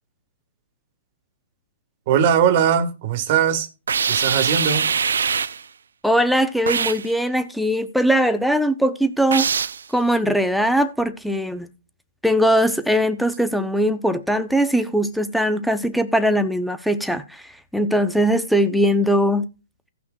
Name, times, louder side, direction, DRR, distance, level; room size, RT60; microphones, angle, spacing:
voice 1, 2.1-3.7 4.1-4.8, right 8 dB, 40° right, 1.3 m, -19 dB
sound 1, 3.9-5.6 6.7-7.1 9.3-9.8, right 6 dB, 85° right, 0.4 m, -22 dB
voice 2, 6.0-9.5 9.9-11.7 12.2-17.4 17.7-19.5, equal, ahead, 0.6 m, -20 dB
17.0 x 6.0 x 2.3 m
hypercardioid pair, 155°, 0 cm